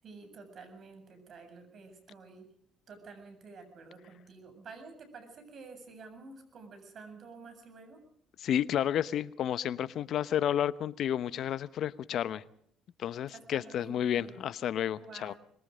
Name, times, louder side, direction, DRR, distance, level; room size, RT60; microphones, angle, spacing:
voice 1, 0.0-2.5 2.9-8.0 13.3-14.5 14.8-15.4, right 4 dB, 55° right, 7.6 m, -50 dB
voice 2, 8.4-12.4 13.0-15.3, left 10 dB, 60° left, 0.9 m, -31 dB
24.5 x 22.0 x 5.1 m
hypercardioid pair, 60°, 0 cm